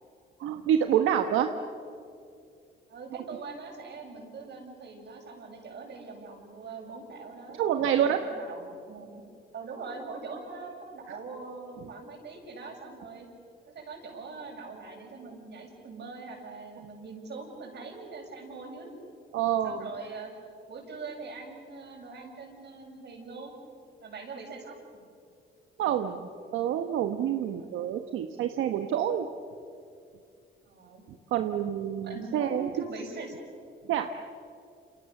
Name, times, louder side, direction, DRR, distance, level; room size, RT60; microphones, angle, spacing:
voice 1, 0.4-1.5 7.6-8.2 19.3-19.9 25.8-29.3 31.3-32.7 33.9-34.1, right 9 dB, 85° right, 7 dB, 1.2 m, -27 dB
voice 2, 2.9-7.6 7.9-9.2 9.5-13.3 13.7-18.9 19.6-20.3 20.7-23.5 24.0-25.0 27.5-27.8 30.7-31.0 32.0-33.3, right 4 dB, 60° right, 1 dB, 7.7 m, -42 dB
28.5 x 28.5 x 7.1 m, 2.4 s
cardioid pair, 90°, 20 cm